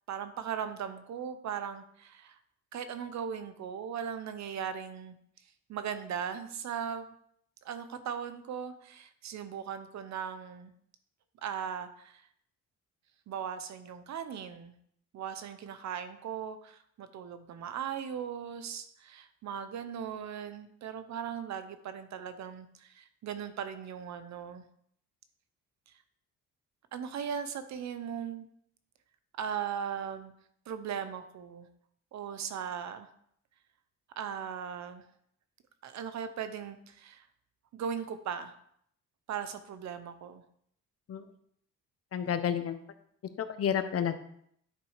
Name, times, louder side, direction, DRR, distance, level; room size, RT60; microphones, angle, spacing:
voice 1, 0.1-2.4 2.7-5.2 5.7-7.1 7.6-10.7 11.4-12.2 13.3-14.7 15.1-24.6 26.9-28.5 29.3-30.3 30.7-31.7 32.1-33.1 34.2-35.0 35.8-37.3 37.7-38.5 39.3-40.4, right 8 dB, 65° right, 11 dB, 0.9 m, -38 dB
voice 2, 42.1-42.8 43.4-44.2, left 8 dB, 50° left, 9 dB, 0.9 m, -30 dB
10.5 x 4.1 x 4.9 m, 0.68 s
cardioid pair, 90°, 30 cm